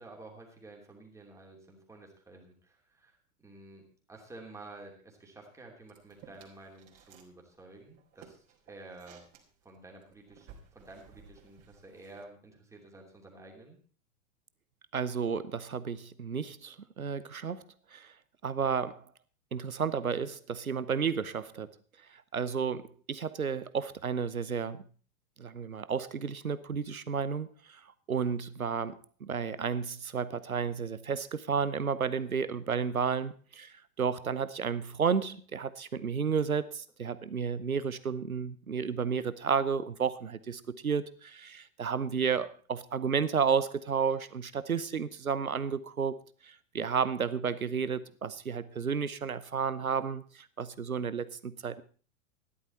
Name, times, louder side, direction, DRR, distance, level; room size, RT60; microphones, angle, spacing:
voice 1, 0.0-9.2 9.6-13.8, right 2 dB, 5° right, 0 dB, 3.0 m, -51 dB
sound 1, 5.9-7.3 7.6-12.2, right 7 dB, 35° right, 3.1 m, -57 dB
voice 2, 14.9-17.6 17.9-18.1 18.4-19.0 19.5-21.7 22.1-24.8 25.4-27.8 28.1-46.2 46.4-51.8, right 6 dB, 80° right, 15 dB, 0.9 m, -32 dB
14.0 x 11.5 x 4.3 m, 0.40 s
figure-of-eight pair, 100°, 42 cm